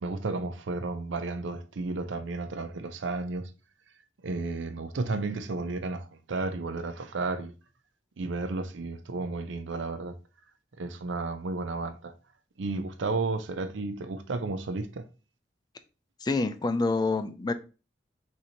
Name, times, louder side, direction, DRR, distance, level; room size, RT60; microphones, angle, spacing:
voice 1, 0.0-3.5 4.2-7.5 8.2-10.2 10.8-12.1 12.6-15.0, right 3 dB, 85° right, 0.5 m, -32 dB
voice 2, 16.2-17.5, left 3 dB, 20° left, 0.3 m, -27 dB
6.0 x 2.8 x 2.8 m
head